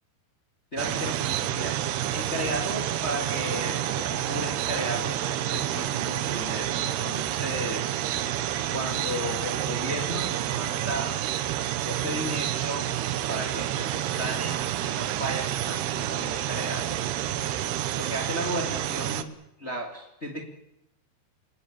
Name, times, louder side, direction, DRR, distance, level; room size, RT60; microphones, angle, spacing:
voice 1, 0.7-1.8 2.1-8.0 8.7-11.2 11.8-12.9 13.3-17.0 17.9-19.3 19.6-20.4, equal, 20° left, 1 dB, 2.0 m, -34 dB
sound 1, 0.8-19.2, right 12 dB, 75° right, 3.0 m, -29 dB
29.0 x 17.0 x 8.8 m, 0.87 s
omnidirectional pair, 4.8 m